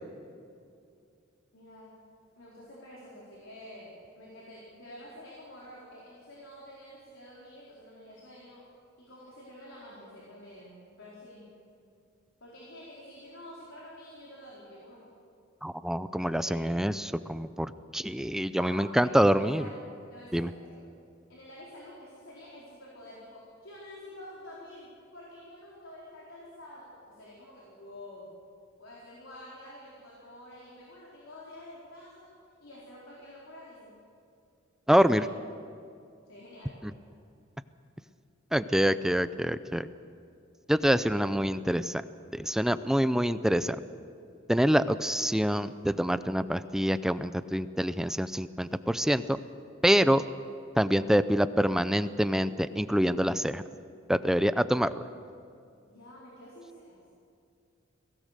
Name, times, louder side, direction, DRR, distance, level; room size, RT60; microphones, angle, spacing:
voice 1, 1.5-2.0 2.4-8.7 9.0-11.5 12.4-15.1 16.1-16.8 18.6-20.9 21.3-28.3 28.8-32.3 32.6-34.0 35.0-35.3 36.3-36.8 55.9-57.0, left 1 dB, 80° left, -5 dB, 4.3 m, -48 dB
voice 2, 15.6-19.7 20.3-20.5 34.9-35.2 36.8-36.9 38.5-39.9 40.7-42.0 42.3-43.8 44.5-49.4 49.8-50.2 50.8-53.6 54.1-55.0, equal, 5° right, 13 dB, 0.4 m, -26 dB
22.5 x 17.5 x 6.7 m, 2.5 s
head